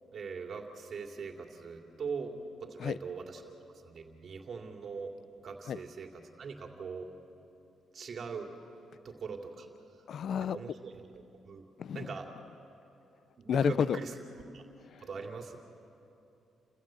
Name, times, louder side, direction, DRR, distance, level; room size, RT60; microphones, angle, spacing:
voice 1, 0.1-3.4 3.8-5.1 5.4-7.1 7.9-8.5 9.0-9.7 10.5-11.6 11.9-12.3 13.4-14.1 14.5-14.6 15.0-15.6, right 5 dB, 50° right, 2 dB, 2.7 m, -41 dB
voice 2, 10.1-10.6 11.8-12.1 13.5-14.0 14.9-15.0, left 7 dB, 60° left, 18 dB, 0.5 m, -30 dB
29.5 x 15.5 x 7.7 m, 2.9 s
cardioid pair, 90°, 0 cm